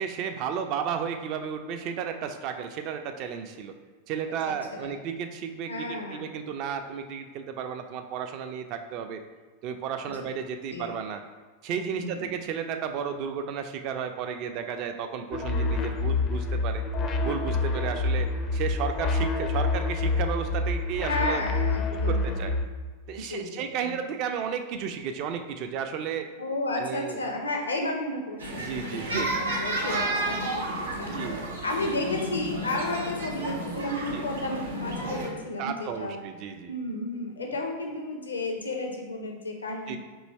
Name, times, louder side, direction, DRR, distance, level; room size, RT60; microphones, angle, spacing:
voice 1, 0.0-3.7 4.1-9.2 9.6-11.2 11.6-16.8 17.2-21.4 21.9-22.5 23.1-26.3 26.8-27.2 28.6-29.3 31.1-31.4 34.1-34.3 35.6-36.7 39.9-40.0, right 7 dB, 40° right, 6 dB, 0.3 m, -33 dB
voice 2, 4.5-4.9 5.7-6.3 10.7-10.9 11.9-12.3 21.1-22.5 23.2-24.0 26.4-31.1 31.6-36.2 36.7-40.0, left 2 dB, 75° left, 2 dB, 0.6 m, -33 dB
sound 1, 15.3-22.7, left 3 dB, 30° left, 0.4 m, -27 dB
sound 2, 28.4-35.3, right 1 dB, 70° right, 0.7 m, -32 dB
3.1 x 2.8 x 4.2 m, 1.4 s
figure-of-eight pair, 90°, 0 cm